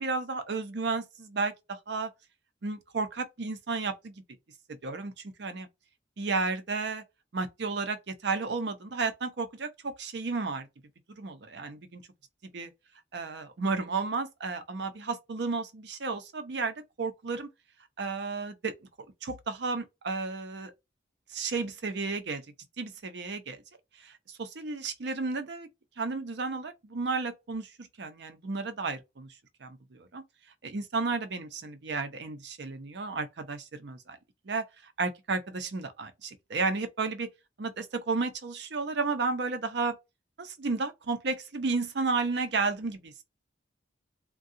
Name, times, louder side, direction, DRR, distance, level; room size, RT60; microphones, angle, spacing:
voice 1, 0.0-2.1 2.6-4.1 4.7-5.7 6.2-7.0 7.3-10.7 11.2-12.0 12.5-12.7 13.1-17.5 18.0-18.7 19.2-20.7 21.3-22.4 22.8-23.6 24.0-25.7 26.0-29.3 29.6-30.2 30.6-34.2 34.5-37.3 37.6-40.0 40.4-43.2, right 4 dB, 65° right, 0.6 m, -33 dB
3.6 x 2.3 x 2.6 m
head